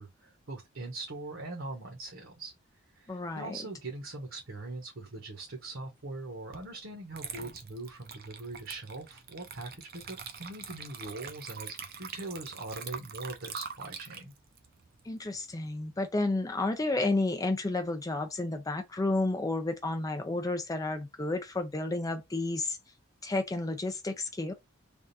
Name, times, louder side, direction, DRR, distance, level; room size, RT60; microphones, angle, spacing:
voice 1, 0.0-2.5 3.0-14.3, right 2 dB, 65° right, 1.1 m, -41 dB
voice 2, 3.1-3.6 15.0-22.8 23.2-24.5, left 2 dB, 15° left, 0.4 m, -31 dB
Water / Liquid, 6.5-6.7 7.1-15.7, right 6 dB, 50° right, 0.6 m, -44 dB
3.5 x 2.5 x 4.0 m
head